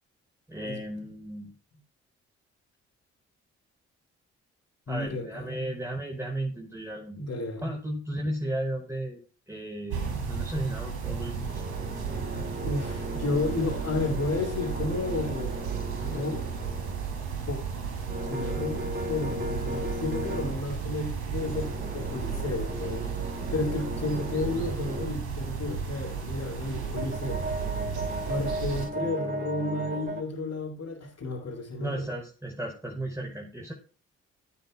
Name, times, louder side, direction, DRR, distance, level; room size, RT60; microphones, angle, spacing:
voice 1, 0.5-1.5 4.9-7.2 7.6-9.2 9.5-11.6 31.8-33.7, right 1 dB, 10° right, 5.5 m, -34 dB
voice 2, 4.9-5.7 7.1-7.7 12.6-15.6 16.0-16.5 17.5-17.6 18.2-23.1 23.5-27.5 28.3-32.1, left 2 dB, 55° left, 6.5 m, -32 dB
sound 1, 9.9-28.9, right 6 dB, 90° right, 3.2 m, -34 dB
sound 2, 11.1-17.2 18.1-20.6 21.4-25.2 26.5-30.2, right 1 dB, 30° right, 3.1 m, -37 dB
18.5 x 9.6 x 2.6 m
hypercardioid pair, 40°, 33 cm